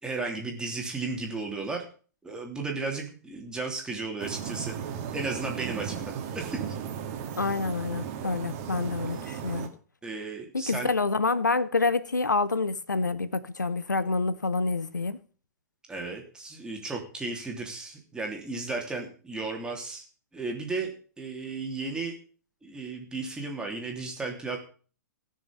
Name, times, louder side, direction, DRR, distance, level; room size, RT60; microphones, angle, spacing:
voice 1, 0.0-1.8 2.2-4.7 5.1-6.6 10.0-10.9 15.9-20.0 20.3-22.1 22.6-24.6, right 3 dB, 10° right, 3.1 m, -34 dB
sound 1, 4.2-9.7, right 8 dB, 40° right, 1.9 m, -35 dB
voice 2, 7.4-9.7 10.5-15.2, left 3 dB, 85° left, 0.7 m, -27 dB
17.5 x 6.6 x 5.3 m
figure-of-eight pair, 110°, 10 cm